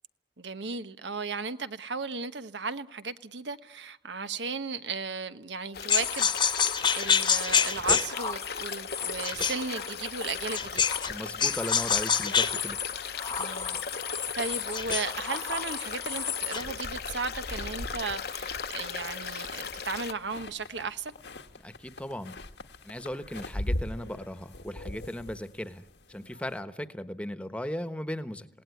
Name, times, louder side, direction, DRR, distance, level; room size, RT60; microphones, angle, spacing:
voice 1, 0.4-10.8 13.4-13.8 14.1-21.1, right 4 dB, 85° right, 1.2 m, -35 dB
sound 1, 5.7-20.1, left 6 dB, 60° left, 1.0 m, -37 dB
sound 2, 5.9-11.1 11.4-16.7, left 7 dB, 25° left, 1.2 m, -28 dB
voice 2, 11.1-12.8 21.6-22.4 22.8-28.5, equal, 5° left, 1.2 m, -37 dB
sound 3, 16.8-26.6, left 1 dB, 80° left, 1.7 m, -40 dB
28.5 x 18.0 x 9.7 m
head